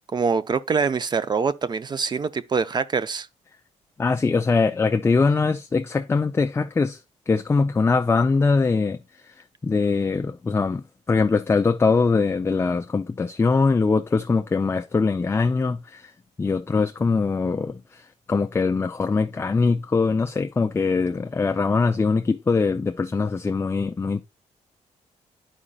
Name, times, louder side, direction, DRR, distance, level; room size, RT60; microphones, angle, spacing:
voice 1, 0.1-3.3, right 5 dB, 35° right, 0.4 m, -24 dB
voice 2, 4.0-7.0 7.3-9.0 9.2-9.3 9.6-16.1 16.4-24.2, left 4 dB, 20° left, 0.4 m, -22 dB
9.9 x 4.9 x 2.3 m
cardioid pair, 90°, 13 cm